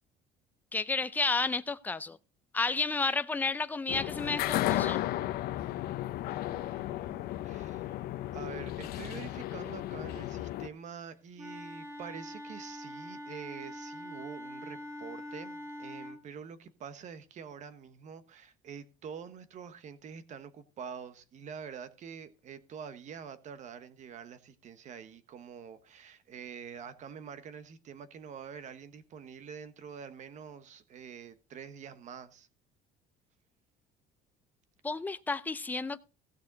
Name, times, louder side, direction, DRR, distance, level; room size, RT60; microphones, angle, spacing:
voice 1, 0.7-2.2 2.5-5.0 34.8-36.0, left 3 dB, 10° left, 0.6 m, -31 dB
sound 1, 3.9-10.7, left 14 dB, 65° left, 0.8 m, -34 dB
voice 2, 6.3-7.9 8.3-32.5, right 7 dB, 45° right, 1.3 m, -46 dB
Wind instrument woodwind instrument, 11.4-16.2, equal, 15° right, 1.7 m, -43 dB
16.0 x 6.8 x 4.0 m
cardioid pair, 130°, 17 cm